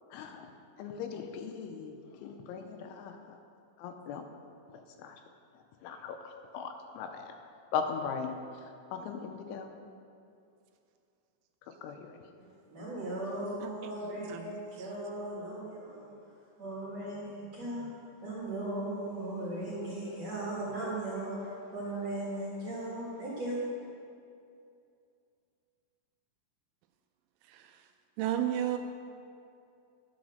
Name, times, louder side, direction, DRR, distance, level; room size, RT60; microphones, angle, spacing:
voice 1, 0.1-0.5 0.8-1.9 2.2-3.4 3.8-4.2 5.0-5.2 5.8-7.3 7.7-8.4 8.9-9.7 11.8-12.2, left 6 dB, 85° left, 5 dB, 3.0 m, -38 dB
voice 2, 12.4-16.1 16.6-17.9 18.2-23.8, right 1 dB, 55° right, -7 dB, 1.9 m, -37 dB
voice 3, 28.2-28.8, right 11 dB, 85° right, 7 dB, 2.9 m, -32 dB
10.5 x 7.0 x 6.4 m, 2.5 s
omnidirectional pair, 5.7 m